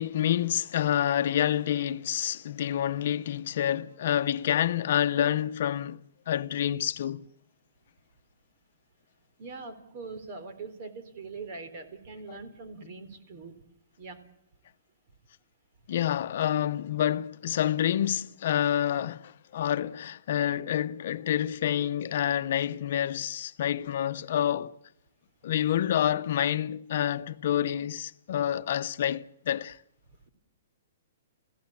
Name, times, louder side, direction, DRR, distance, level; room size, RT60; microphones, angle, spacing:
voice 1, 0.0-7.3 12.3-12.4 15.9-24.8 25.4-29.8, left 10 dB, 60° left, 0.8 m, -28 dB
voice 2, 9.4-13.5 14.0-14.2, right 4 dB, 45° right, 3.8 m, -42 dB
28.0 x 16.5 x 8.7 m
hypercardioid pair, 145°, 0 cm